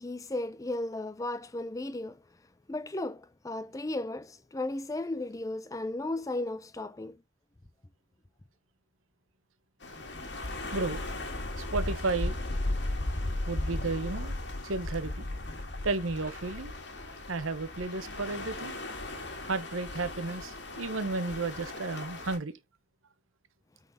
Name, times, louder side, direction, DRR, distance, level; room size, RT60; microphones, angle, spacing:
voice 1, 0.0-2.2 2.7-7.2, left 2 dB, 15° left, 0.4 m, -35 dB
sound 1, 9.8-22.4, left 2 dB, 60° left, 1.7 m, -36 dB
voice 2, 10.7-11.0 11.6-12.4 13.5-14.4 14.6-15.3 15.8-16.7 17.3-18.7 19.4-22.5, right 3 dB, 90° right, 1.0 m, -33 dB
9.2 x 4.1 x 4.1 m
head